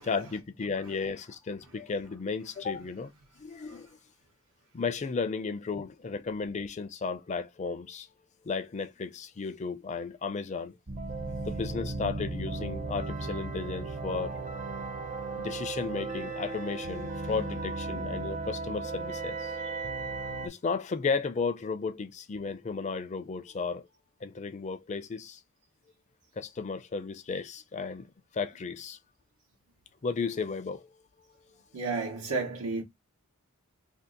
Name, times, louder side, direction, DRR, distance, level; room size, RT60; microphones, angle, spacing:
voice 1, 0.0-3.1 3.4-4.0 4.7-8.1 8.4-10.7 11.4-14.4 15.4-19.7 20.2-23.9 24.2-25.4 26.4-28.1 28.3-29.0 30.0-30.9, left 4 dB, 30° left, 0.4 m, -34 dB
sound 1, 10.9-20.5, right 3 dB, 35° right, 0.6 m, -36 dB
voice 2, 31.7-32.8, right 3 dB, 90° right, 1.0 m, -32 dB
2.7 x 2.4 x 3.7 m
head